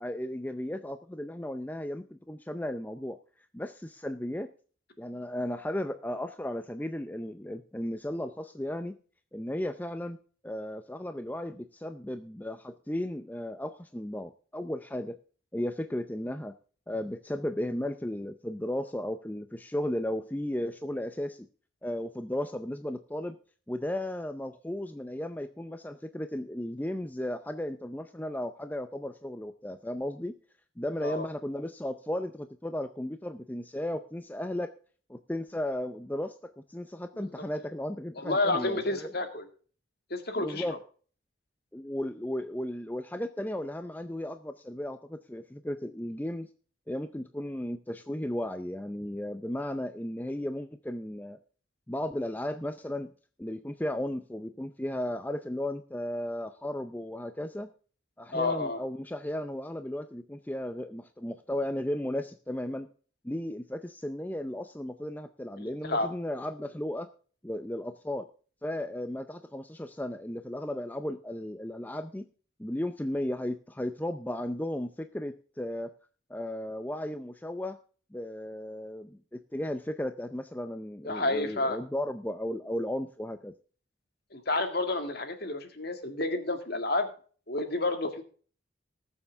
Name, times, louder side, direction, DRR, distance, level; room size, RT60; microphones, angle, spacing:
voice 1, 0.0-3.2 3.5-4.5 5.0-9.0 9.3-10.2 10.4-15.2 15.5-16.5 16.9-21.5 21.8-23.4 23.7-30.3 30.8-34.7 35.1-39.1 40.4-40.8 41.7-46.5 46.9-51.4 51.9-53.1 53.4-57.7 58.2-62.9 63.2-67.1 67.4-68.3 68.6-72.3 72.6-75.9 76.3-77.8 78.1-83.5, left 1 dB, 10° left, 9 dB, 0.5 m, -35 dB
voice 2, 38.2-39.5 40.1-40.8 58.3-58.8 65.6-66.1 81.0-81.8 84.3-87.1 87.5-88.2, left 2 dB, 50° left, 7 dB, 2.0 m, -30 dB
19.5 x 7.2 x 3.5 m, 0.41 s
head